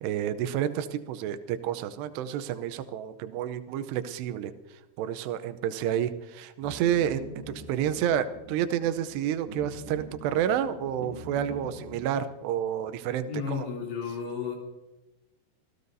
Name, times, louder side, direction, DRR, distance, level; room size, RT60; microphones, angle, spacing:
voice 1, 0.0-4.5 5.0-13.7, right 10 dB, 85° right, 11 dB, 2.9 m, -30 dB
sound 1, 6.6-12.1, equal, 45° right, 2.4 m, -44 dB
voice 2, 13.3-14.6, left 6 dB, 80° left, -1 dB, 5.2 m, -33 dB
27.5 x 16.5 x 2.7 m, 1.0 s
omnidirectional pair, 4.8 m